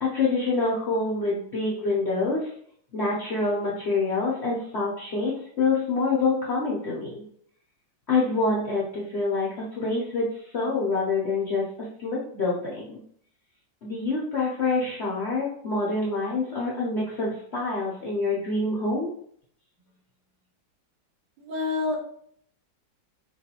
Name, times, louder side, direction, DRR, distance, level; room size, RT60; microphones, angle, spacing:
voice 1, 0.0-2.5 2.9-7.2 8.1-13.0 13.8-19.1, left 3 dB, 65° left, -5 dB, 0.6 m, -26 dB
voice 2, 21.4-22.0, left 3 dB, 90° right, 1 dB, 1.5 m, -27 dB
4.4 x 2.4 x 2.8 m, 0.64 s
omnidirectional pair, 2.0 m